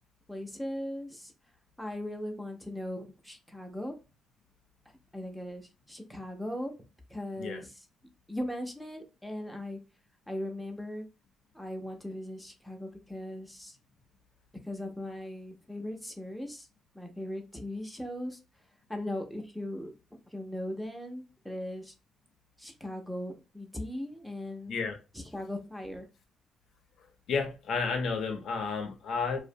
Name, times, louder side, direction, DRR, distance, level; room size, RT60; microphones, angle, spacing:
voice 1, 0.3-1.3 1.8-3.9 5.1-6.7 7.1-7.9 8.3-9.8 10.3-11.0 11.5-13.8 14.6-16.7 16.9-18.4 18.9-19.9 20.3-21.9 22.6-24.8 25.1-26.1, left 1 dB, ahead, 0.6 m, -38 dB
voice 2, 27.3-29.4, left 5 dB, 70° left, 0.5 m, -31 dB
2.5 x 2.1 x 2.6 m
cardioid pair, 90°, 0 cm